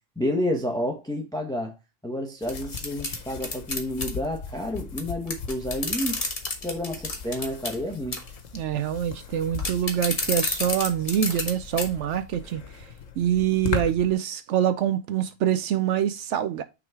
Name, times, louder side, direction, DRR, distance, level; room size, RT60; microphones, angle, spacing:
voice 1, 0.2-1.7 2.0-6.2 6.6-8.2, left 1 dB, 5° left, 1.0 m, -30 dB
sound 1, 2.4-14.1, left 5 dB, 85° left, 1.3 m, -38 dB
sound 2, 2.5-4.1 5.0-5.1 5.3-7.8 8.1-8.4 9.6-11.5 11.8-11.9 12.3-12.4, left 3 dB, 30° left, 1.1 m, -29 dB
voice 2, 8.5-12.6 13.2-16.6, right 10 dB, 70° right, 0.9 m, -25 dB
6.1 x 3.9 x 4.5 m
omnidirectional pair, 1.3 m